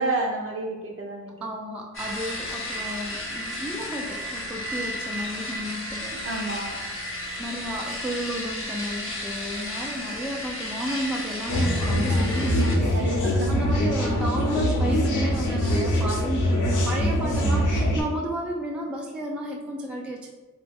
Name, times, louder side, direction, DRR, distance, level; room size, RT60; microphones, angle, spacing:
voice 1, 0.0-1.3 6.2-6.8 12.9-13.6, right 2 dB, 45° right, 1 dB, 0.6 m, -30 dB
voice 2, 1.4-6.6 7.4-20.3, equal, 5° right, -1 dB, 0.4 m, -33 dB
sound 1, 1.9-12.8, left 1 dB, 40° left, 0.8 m, -33 dB
sound 2, 11.5-18.0, equal, 75° left, 0.7 m, -23 dB
2.9 x 2.1 x 3.4 m, 1.2 s
cardioid pair, 60°, 31 cm